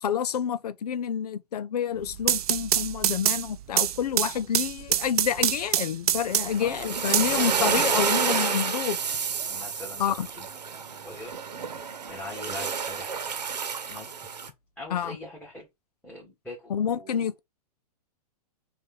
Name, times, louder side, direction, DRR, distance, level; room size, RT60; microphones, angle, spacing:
voice 1, 0.0-9.0 10.0-10.3 14.9-15.2 16.7-17.4, left 8 dB, 70° left, 0.6 m, -28 dB
sound 1, 2.0-6.7 7.1-8.1, right 11 dB, 65° right, 0.5 m, -26 dB
sound 2, 6.3-14.5, right 6 dB, 85° right, 1.0 m, -29 dB
voice 2, 6.6-8.0 9.5-10.5 11.0-11.3 11.8-13.3 13.7-14.1 14.8-15.7 16.0-17.4, left 2 dB, 5° left, 2.0 m, -42 dB
5.1 x 2.6 x 3.7 m
hypercardioid pair, 115°, 21 cm